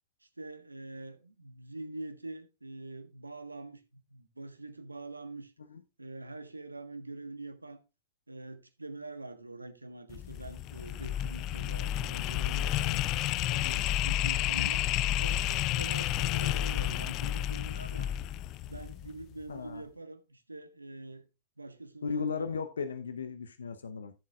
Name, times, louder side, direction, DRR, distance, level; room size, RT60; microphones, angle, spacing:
voice 1, 0.2-5.5 6.0-7.8 8.3-13.0 13.6-14.9 15.2-18.1 18.7-21.3 21.6-22.5, right 2 dB, 90° right, 1.3 m, -44 dB
sound 1, 10.1-19.2, left 13 dB, 35° left, 0.4 m, -31 dB
voice 2, 13.5-13.8 19.5-19.8 22.0-24.1, left 5 dB, 75° left, 0.8 m, -36 dB
14.5 x 7.5 x 2.4 m
figure-of-eight pair, 100°, 0 cm